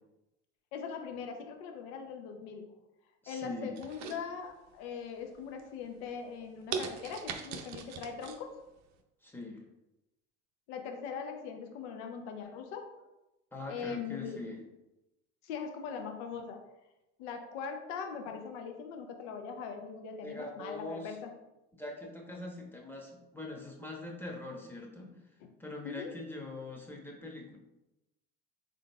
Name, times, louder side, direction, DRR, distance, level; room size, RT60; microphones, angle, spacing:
voice 1, 0.7-2.7 3.3-8.6 10.7-12.9 13.7-14.4 15.4-16.6 17.2-21.3 25.8-26.1, left 6 dB, 80° left, 5 dB, 0.6 m, -41 dB
voice 2, 3.2-3.8 9.2-9.6 13.5-14.6 18.3-18.4 20.2-21.2 21.8-25.2 25.6-27.6, left 2 dB, 5° left, -1 dB, 0.9 m, -42 dB
sound 1, 3.7-4.8 5.2-5.6 6.1-6.2 6.7-8.4 8.8-8.9, right 6 dB, 55° right, 0.5 m, -39 dB
3.8 x 3.6 x 2.2 m, 0.95 s
supercardioid pair, 75°, 33 cm